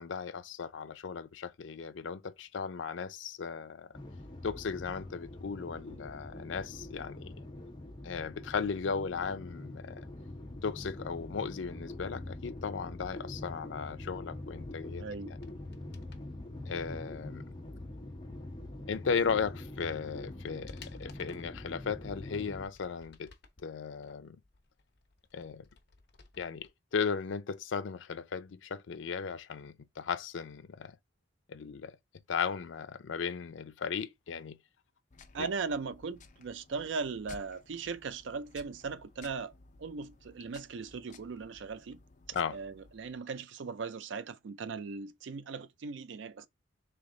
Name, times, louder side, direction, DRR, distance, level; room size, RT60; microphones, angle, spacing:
voice 1, 0.0-3.9 4.4-7.3 8.0-10.1 10.6-15.0 16.7-17.4 18.9-23.3 23.6-24.4 25.3-25.6 26.4-31.0 31.5-31.9 32.3-34.6 35.4-35.5 42.3-42.6, left 6 dB, 85° left, 0.5 m, -36 dB
sound 1, 3.9-22.7, left 1 dB, 25° left, 1.0 m, -44 dB
voice 2, 15.0-15.3 35.3-39.5 39.8-42.0 42.5-46.5, right 4 dB, 75° right, 0.4 m, -38 dB
sound 2, 15.3-16.3 19.3-19.4 19.9-21.6 22.1-23.6 24.0-26.7 27.0-27.1, left 4 dB, 60° left, 1.0 m, -58 dB
sound 3, 35.1-43.2, left 3 dB, 40° left, 0.6 m, -57 dB
3.4 x 3.4 x 3.8 m
head